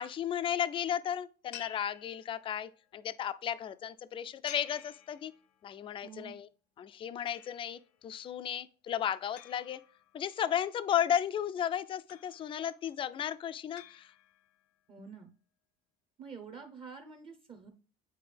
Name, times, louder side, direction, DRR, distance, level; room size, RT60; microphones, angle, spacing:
voice 1, 0.0-5.3 5.6-6.5 6.8-9.8 10.1-14.1, left 9 dB, 25° left, 0.3 m, -34 dB
sound 1, 1.5-2.7 4.5-5.7 7.3-8.0 9.4-10.5 12.1-12.8 13.8-14.6, left 11 dB, 85° left, 0.8 m, -52 dB
voice 2, 6.0-6.4 14.9-15.3 16.2-17.7, right 5 dB, 25° right, 0.7 m, -47 dB
8.8 x 4.3 x 3.3 m
cardioid pair, 140°, 20 cm